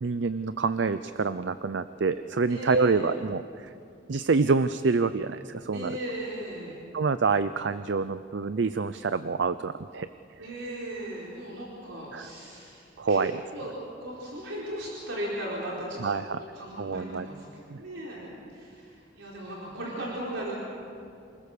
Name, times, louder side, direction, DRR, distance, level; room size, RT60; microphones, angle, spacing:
voice 1, 0.0-3.7 4.1-6.0 6.9-10.1 12.1-12.3 13.0-13.4 16.0-16.4 16.8-17.3 17.7-17.8, right 4 dB, 65° right, 12 dB, 0.5 m, -27 dB
voice 2, 2.5-3.1 5.7-6.7 10.4-13.2 13.5-13.7 14.0-16.2 16.5-18.2 18.5-20.5, right 1 dB, 85° right, -5 dB, 4.6 m, -37 dB
28.5 x 20.5 x 6.7 m, 2.7 s
head